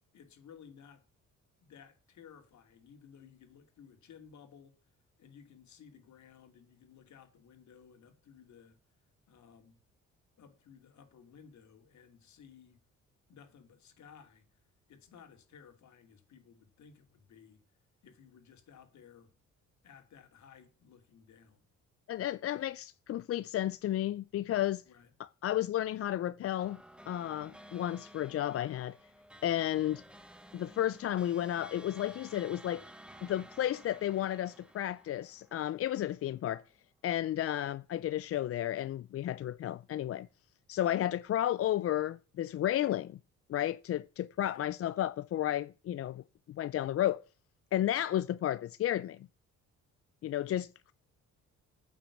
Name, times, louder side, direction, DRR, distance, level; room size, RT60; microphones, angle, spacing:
voice 1, 0.1-1.0 1.6-4.7 5.2-8.8 9.3-9.8 10.4-12.8 13.3-14.5 14.9-17.6 18.0-19.3 19.8-21.6 24.9-25.1 44.4-44.6, left 7 dB, 70° left, 2.6 m, -57 dB
voice 2, 22.1-24.8 25.2-26.8 27.1-29.0 29.4-30.0 30.5-32.8 33.2-36.6 37.0-40.3 40.7-43.2 43.5-47.2 47.7-49.3 50.2-50.9, left 12 dB, 50° left, 0.4 m, -32 dB
sound 1, 26.6-36.2, equal, 5° right, 1.2 m, -54 dB
9.2 x 6.0 x 8.3 m
cardioid pair, 90°, 30 cm